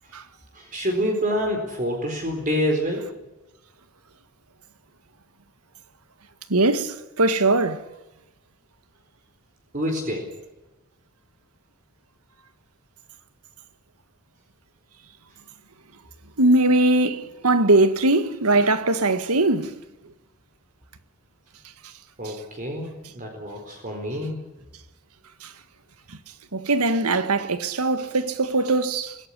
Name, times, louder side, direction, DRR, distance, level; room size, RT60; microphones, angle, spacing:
voice 1, 0.5-3.1 9.7-10.3 22.2-24.4, equal, 35° right, 4.3 m, -27 dB
voice 2, 6.5-7.8 16.4-19.7 22.3-22.4 25.4-25.5 26.5-29.2, right 2 dB, 85° right, 1.8 m, -21 dB
24.5 x 17.5 x 9.9 m
head